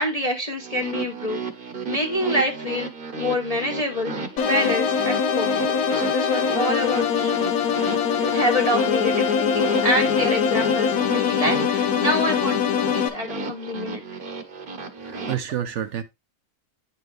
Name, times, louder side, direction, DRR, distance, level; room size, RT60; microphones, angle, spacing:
voice 1, 0.0-1.4 1.9-2.9 3.2-4.1 4.4-7.4 8.3-14.0, left 1 dB, 30° left, 0.8 m, -26 dB
sound 1, 0.6-15.4, right 4 dB, 40° right, 1.0 m, -34 dB
sound 2, 4.4-13.1, left 7 dB, 80° left, 1.4 m, -22 dB
voice 2, 15.0-16.0, right 9 dB, 65° right, 0.9 m, -29 dB
9.3 x 4.4 x 3.1 m
omnidirectional pair, 1.6 m